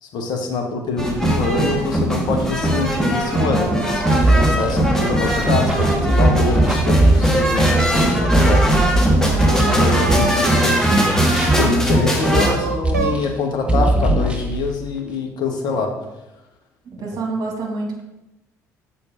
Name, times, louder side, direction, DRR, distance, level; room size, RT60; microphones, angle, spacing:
voice 1, 0.0-8.9 9.8-11.0 11.6-15.9, left 3 dB, 55° left, 2 dB, 1.4 m, -25 dB
sound 1, 1.0-12.5, equal, 5° left, 1.7 m, -19 dB
sound 2, 1.5-1.9 2.4-6.4 6.9-8.4 9.1-10.8 11.6-13.3, right 5 dB, 85° right, 0.5 m, -31 dB
sound 3, 4.1-10.6 10.9-13.4 13.7-14.7, right 2 dB, 10° right, 1.4 m, -20 dB
voice 2, 9.2-10.0 17.0-18.0, right 3 dB, 45° right, 0 dB, 2.1 m, -28 dB
6.8 x 5.2 x 5.0 m, 0.98 s
figure-of-eight pair, 50°, 9 cm